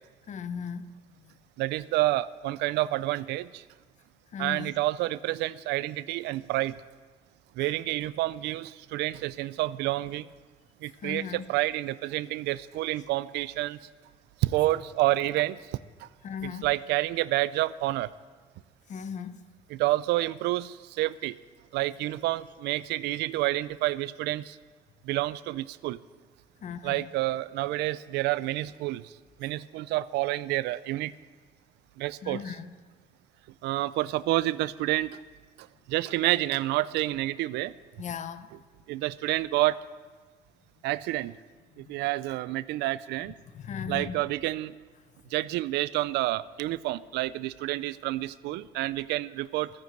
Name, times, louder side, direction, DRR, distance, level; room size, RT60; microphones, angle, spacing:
voice 1, 0.3-0.9 1.2-1.3 4.3-4.8 7.6-7.8 11.0-11.4 16.2-16.7 18.9-19.4 26.6-27.1 32.2-32.7 38.0-38.5 41.7-41.9 43.2-44.2, left 6 dB, 45° left, 12 dB, 0.8 m, -37 dB
voice 2, 1.6-3.6 4.4-6.8 7.6-10.3 10.8-13.8 14.4-15.6 16.0-16.1 16.6-18.1 19.7-21.4 21.7-24.6 25.0-26.0 26.8-29.1 29.4-31.1 32.0-32.4 33.6-35.1 35.9-37.7 38.9-39.8 40.8-41.3 41.8-43.3 43.9-44.7 45.3-49.7, right 16 dB, 85° right, 18 dB, 0.5 m, -29 dB
13.0 x 9.8 x 7.9 m, 1.4 s
cardioid pair, 110°, 17 cm